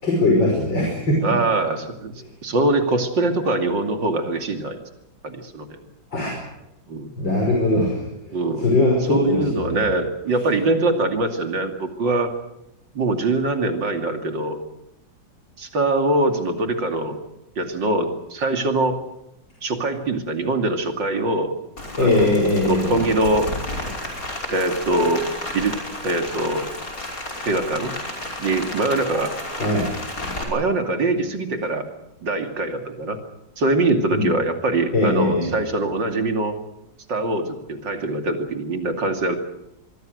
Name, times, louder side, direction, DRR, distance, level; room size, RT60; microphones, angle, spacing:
voice 1, 0.0-1.3 6.1-6.4 7.2-9.8 22.0-23.0 29.6-29.9 34.1-34.3 34.9-35.5, left 2 dB, 75° left, 0 dB, 6.3 m, -21 dB
voice 2, 1.2-2.1 2.4-4.8 5.2-5.8 6.9-7.1 8.3-8.7 9.1-12.3 12.9-14.6 15.6-17.2 17.6-19.0 19.6-21.5 22.0-22.4 22.6-23.5 24.5-25.3 25.5-25.8 26.0-26.7 27.4-27.9 28.4-29.3 30.5-31.9 32.2-33.2 33.6-36.6 37.1-39.4, right 2 dB, 70° right, 5 dB, 3.3 m, -23 dB
Rain, 21.8-30.4, left 1 dB, 45° left, 6.0 m, -32 dB
26.0 x 22.0 x 6.5 m, 0.86 s
omnidirectional pair, 2.1 m